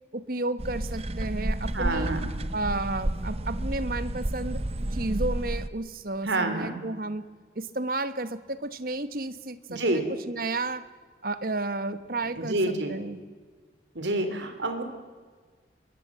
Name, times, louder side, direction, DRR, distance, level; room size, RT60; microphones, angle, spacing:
voice 1, 0.1-2.1 2.5-4.6 4.9-7.2 7.5-10.8 11.2-13.2, right 2 dB, 50° right, 13 dB, 1.3 m, -32 dB
sound 1, 0.6-5.7, right 1 dB, 35° right, 0.8 m, -31 dB
voice 2, 1.7-2.3 6.2-6.8 9.7-10.0 12.4-12.9 14.0-14.8, right 2 dB, 70° right, 7 dB, 3.6 m, -28 dB
23.5 x 21.0 x 7.5 m, 1.5 s
head